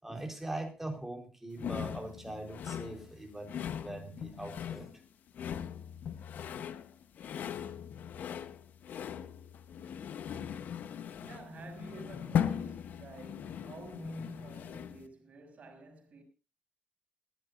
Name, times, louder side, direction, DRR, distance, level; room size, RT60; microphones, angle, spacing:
voice 1, 0.0-3.6 3.8-4.9, right 2 dB, 10° right, 4.1 m, -41 dB
sound 1, 1.6-15.1, left 8 dB, 75° left, 1.1 m, -39 dB
voice 2, 11.2-16.2, right 1 dB, 50° right, 6.5 m, -48 dB
20.5 x 16.5 x 2.6 m
cardioid pair, 120°, 3 cm